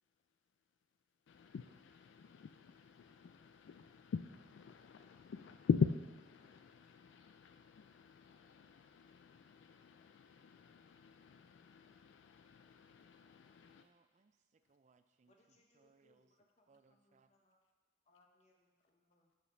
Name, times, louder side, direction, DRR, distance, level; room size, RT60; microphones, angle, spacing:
voice 1, 1.3-13.9, left 6 dB, 70° left, 9 dB, 0.3 m, -42 dB
voice 2, 13.6-17.3, right 4 dB, 40° right, 9 dB, 0.4 m, -72 dB
voice 3, 15.3-17.6 18.0-19.3, left 2 dB, 35° left, 0 dB, 1.1 m, -74 dB
6.8 x 5.0 x 5.7 m, 1.3 s
head